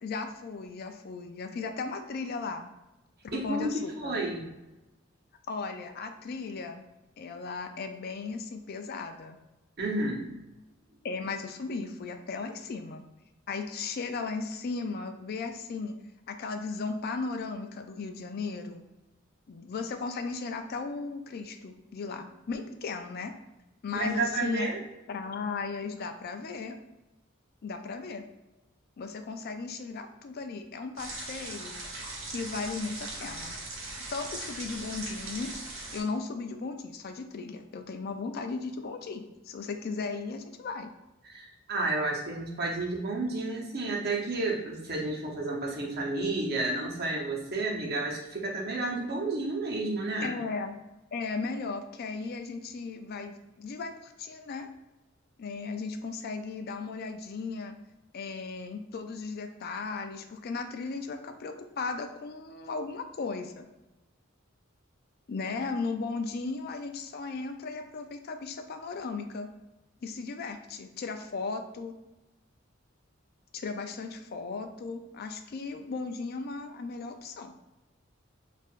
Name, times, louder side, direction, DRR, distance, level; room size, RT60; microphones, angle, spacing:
voice 1, 0.0-2.7 3.3-4.2 5.5-6.8 7.2-9.4 11.0-13.0 13.5-15.9 16.3-18.8 19.5-23.3 23.8-24.7 25.1-26.8 27.6-28.2 29.0-31.8 32.3-33.6 34.1-35.5 35.9-40.9 50.2-50.8 51.1-54.7 55.4-57.8 58.1-63.7 65.3-69.5 70.0-71.9 73.5-77.5, left 4 dB, 50° left, 6 dB, 0.4 m, -36 dB
voice 2, 3.3-4.5 9.8-10.2 23.9-24.8 41.2-50.3, right 2 dB, 55° right, -3 dB, 0.9 m, -31 dB
sound 1, 31.0-36.0, right 2 dB, 85° right, 1.1 m, -39 dB
4.5 x 2.5 x 2.4 m, 1.0 s
head